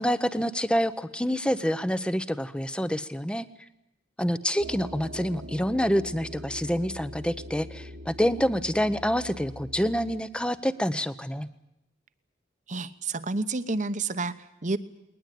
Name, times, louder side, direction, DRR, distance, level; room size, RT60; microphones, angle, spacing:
voice 1, 0.0-3.5 4.2-11.5, equal, 5° left, 13 dB, 0.8 m, -27 dB
sound 1, 4.6-10.2, equal, 65° right, 1.6 m, -42 dB
voice 2, 12.7-14.8, right 3 dB, 40° right, 13 dB, 1.0 m, -30 dB
21.0 x 20.0 x 9.3 m, 0.87 s
head